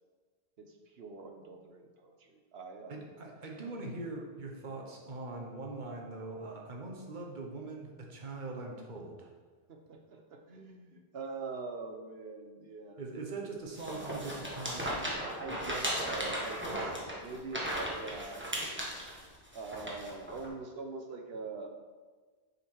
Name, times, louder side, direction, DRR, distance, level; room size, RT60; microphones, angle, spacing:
voice 1, 0.6-3.0 3.6-3.8 9.7-13.0 15.3-18.4 19.5-21.7, right 3 dB, 70° right, 4 dB, 1.1 m, -43 dB
voice 2, 2.9-9.3 13.0-14.9, right 3 dB, 50° right, 0 dB, 1.2 m, -42 dB
sound 1, 13.8-20.5, equal, 10° right, 1.3 m, -36 dB
7.3 x 5.6 x 4.8 m, 1.4 s
omnidirectional pair, 1.1 m